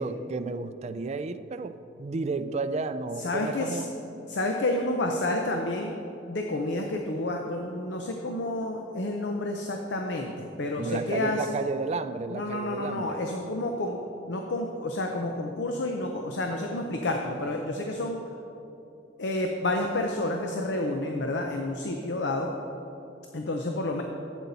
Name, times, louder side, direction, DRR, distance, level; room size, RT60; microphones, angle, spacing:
voice 1, 0.0-1.7 2.0-3.9 10.7-13.2, right 3 dB, 35° right, 10 dB, 0.4 m, -32 dB
voice 2, 3.2-3.8 4.3-6.0 6.3-11.6 12.3-14.0 14.3-18.2 19.2-22.5 23.3-24.0, left 2 dB, 75° left, 3 dB, 0.7 m, -30 dB
12.0 x 8.1 x 4.1 m, 2.9 s
head